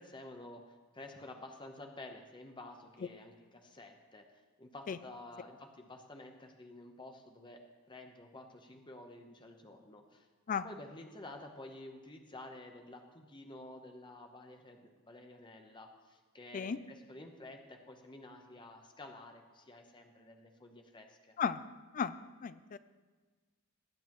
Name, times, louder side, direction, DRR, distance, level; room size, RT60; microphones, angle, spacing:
voice 1, 0.0-4.2 4.6-7.6 7.9-10.3 10.6-21.4, left 2 dB, 20° left, 4 dB, 0.9 m, -51 dB
voice 2, 22.4-22.8, left 6 dB, 35° left, 14 dB, 0.3 m, -34 dB
19.5 x 8.1 x 3.0 m, 1.4 s
head